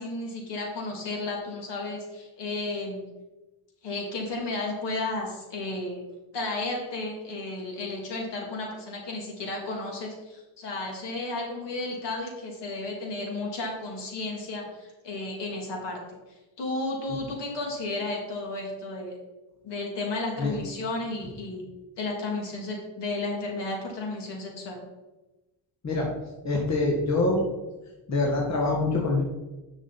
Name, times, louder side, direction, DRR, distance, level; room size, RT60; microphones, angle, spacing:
voice 1, 0.0-3.0 3.8-6.0 6.3-16.0 16.6-19.2 19.6-21.6 22.0-24.8, left 2 dB, 65° left, -1 dB, 3.4 m, -33 dB
voice 2, 26.4-27.5 28.1-29.2, left 2 dB, 35° left, -2 dB, 2.1 m, -25 dB
11.0 x 6.2 x 4.4 m, 1.1 s
cardioid pair, 120°, 45 cm